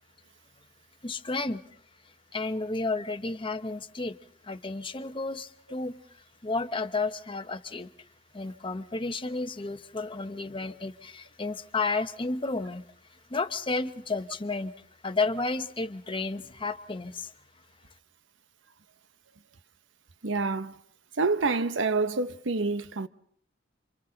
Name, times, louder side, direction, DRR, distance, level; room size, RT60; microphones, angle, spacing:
voice 1, 1.0-1.6 2.3-4.2 4.4-6.0 6.4-7.9 8.3-12.8 13.3-14.7 15.0-17.3, left 3 dB, 25° left, 0.9 m, -32 dB
voice 2, 20.2-20.8 21.2-23.1, right 3 dB, 70° right, 0.9 m, -27 dB
29.0 x 27.0 x 4.0 m
head